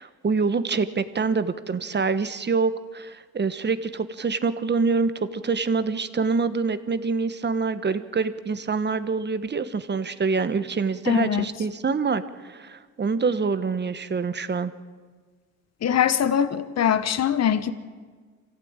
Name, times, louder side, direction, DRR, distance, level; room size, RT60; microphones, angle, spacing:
voice 1, 0.0-14.7, right 4 dB, 35° right, 12 dB, 1.2 m, -26 dB
voice 2, 11.1-11.5 15.8-17.7, left 9 dB, 55° left, 12 dB, 1.2 m, -22 dB
24.5 x 15.5 x 8.9 m, 1.5 s
cardioid pair, 90°, 32 cm